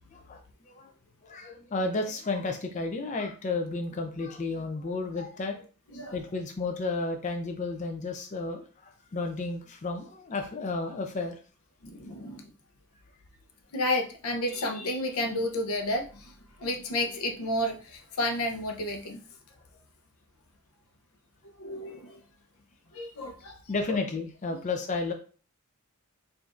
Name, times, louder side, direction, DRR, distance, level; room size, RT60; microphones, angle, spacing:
voice 1, 0.1-0.9 1.2-5.7 6.1-11.3 23.7-25.1, left 3 dB, 35° left, 5 dB, 0.4 m, -32 dB
voice 2, 11.8-12.5 13.7-16.3 16.6-19.2 21.4-22.2 22.9-23.6 23.9-24.0 24.5-24.6, left 1 dB, 80° left, 4 dB, 0.7 m, -31 dB
4.9 x 2.5 x 2.4 m, 0.39 s
head